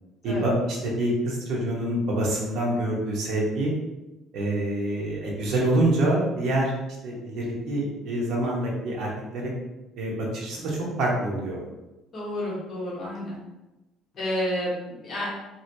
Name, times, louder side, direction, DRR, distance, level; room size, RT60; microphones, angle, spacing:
voice 1, 0.2-3.7 4.3-6.7 7.0-9.5 10.0-11.6, right 1 dB, 65° right, -3 dB, 1.0 m, -26 dB
voice 2, 12.1-13.4 14.1-15.3, left 1 dB, 40° left, -5 dB, 1.2 m, -30 dB
3.0 x 3.0 x 2.8 m, 1.0 s
cardioid pair, 140°, 0 cm